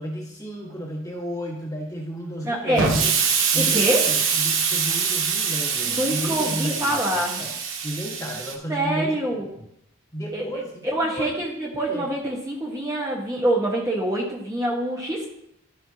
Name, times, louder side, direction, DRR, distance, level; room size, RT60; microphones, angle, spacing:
voice 1, 0.0-3.1 3.5-7.6 7.8-9.7 10.1-11.3 11.9-12.1, equal, 15° left, -2 dB, 1.5 m, -32 dB
voice 2, 2.4-2.9 3.5-4.0 5.9-7.4 8.7-9.4 10.3-10.4 10.9-15.3, right 1 dB, 15° right, -3 dB, 1.2 m, -25 dB
Explosion, 2.8-8.5, right 6 dB, 65° right, 0.9 m, -24 dB
13.0 x 5.5 x 2.8 m, 0.77 s
head